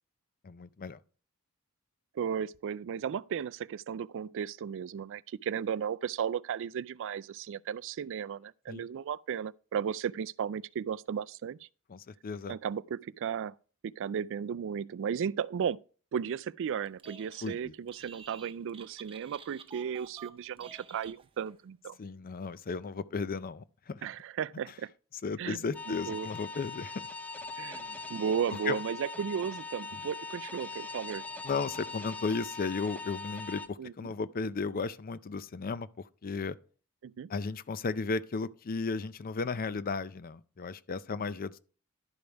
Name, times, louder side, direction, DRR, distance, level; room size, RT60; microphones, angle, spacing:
voice 1, 0.4-1.0 8.7-8.8 11.9-12.6 17.4-17.7 22.0-24.0 25.2-27.0 28.7-28.8 31.4-36.6 37.3-41.6, left 4 dB, 40° left, 0.5 m, -35 dB
voice 2, 2.1-11.7 12.5-13.6 13.8-15.8 16.1-22.0 24.0-24.9 25.4-25.6 26.1-26.3 27.6-31.2 33.8-34.1 37.0-37.3, right 7 dB, 60° right, 0.3 m, -35 dB
Telephone, 16.9-17.6 17.9-21.6, right 6 dB, 25° right, 0.7 m, -51 dB
sound 1, 25.7-33.7, left 4 dB, 5° left, 0.8 m, -41 dB
11.5 x 5.2 x 4.5 m
head